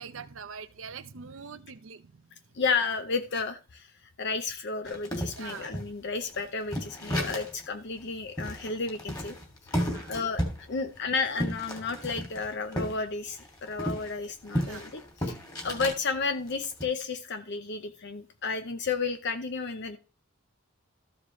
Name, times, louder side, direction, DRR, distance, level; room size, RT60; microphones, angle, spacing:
voice 1, 0.0-2.1 5.4-5.7 9.8-10.1 14.6-14.9, right 6 dB, 70° right, 0.7 m, -43 dB
voice 2, 2.5-3.9 4.2-9.4 9.7-15.4 15.6-20.0, left 4 dB, 55° left, 0.8 m, -32 dB
sound 1, 4.9-7.7 8.0-8.1 8.4-13.0 13.3-16.0 16.5-16.9, equal, 20° left, 2.6 m, -33 dB
13.5 x 7.2 x 3.2 m
head